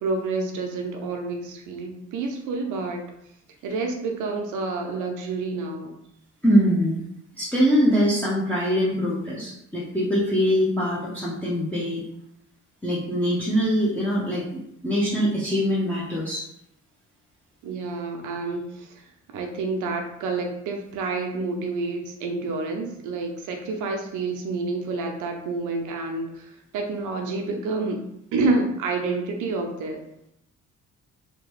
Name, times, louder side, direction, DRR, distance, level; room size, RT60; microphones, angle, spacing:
voice 1, 0.0-3.0 3.6-5.9 17.6-18.9 19.3-28.0 28.3-30.0, right 3 dB, 85° right, 3 dB, 0.6 m, -28 dB
voice 2, 6.4-7.0 7.3-12.0 12.8-16.5, equal, 5° left, -8 dB, 0.7 m, -23 dB
2.8 x 2.2 x 3.0 m, 0.77 s
cardioid pair, 90°, 30 cm